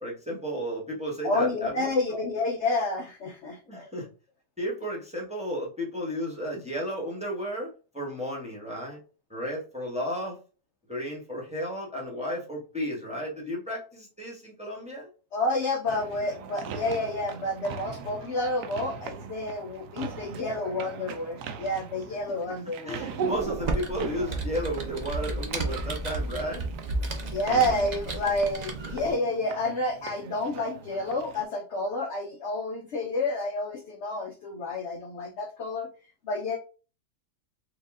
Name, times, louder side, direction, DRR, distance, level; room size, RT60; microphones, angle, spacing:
voice 1, 0.0-1.9 3.7-4.1 4.6-9.0 9.3-10.4 10.9-15.1 22.8-26.7, equal, 5° right, -3 dB, 1.0 m, -33 dB
voice 2, 1.2-3.9 15.3-23.0 27.2-35.9 36.2-36.6, left 2 dB, 65° left, 4 dB, 0.7 m, -29 dB
sound 1, 15.9-31.4, right 6 dB, 80° right, 1.2 m, -40 dB
Computer keyboard, 23.3-29.1, right 2 dB, 50° right, 0.5 m, -33 dB
4.7 x 2.4 x 3.6 m, 0.35 s
omnidirectional pair, 1.8 m